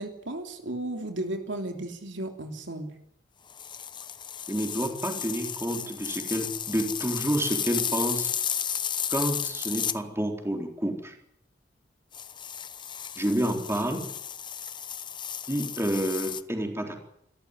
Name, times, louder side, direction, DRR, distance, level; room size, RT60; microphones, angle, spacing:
voice 1, 0.0-2.9, right 1 dB, 75° right, 5 dB, 3.2 m, -34 dB
sound 1, 3.5-10.0 12.1-16.4, left 8 dB, 25° left, 0.9 m, -33 dB
voice 2, 4.5-8.3 9.1-11.2 13.2-14.1 15.5-17.0, right 1 dB, 15° right, 3 dB, 4.0 m, -29 dB
26.0 x 14.0 x 9.8 m, 0.72 s
head